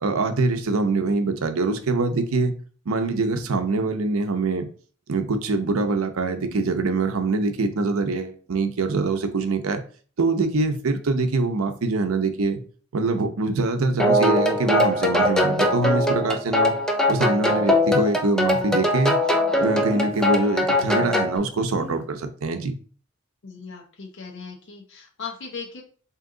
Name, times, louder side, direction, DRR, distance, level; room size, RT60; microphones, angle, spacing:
voice 1, 0.0-2.5 2.9-4.7 5.1-9.8 10.2-12.6 12.9-16.7 17.1-19.2 19.6-22.7, right 3 dB, 90° right, 0.6 m, -24 dB
sound 1, 14.0-21.4, left 1 dB, 5° left, 0.4 m, -21 dB
Speech, 14.6-14.7 19.9-20.5 21.8-22.0, equal, 30° right, 0.9 m, -38 dB
voice 2, 23.4-25.8, left 5 dB, 60° left, 0.7 m, -38 dB
3.7 x 2.8 x 3.7 m
head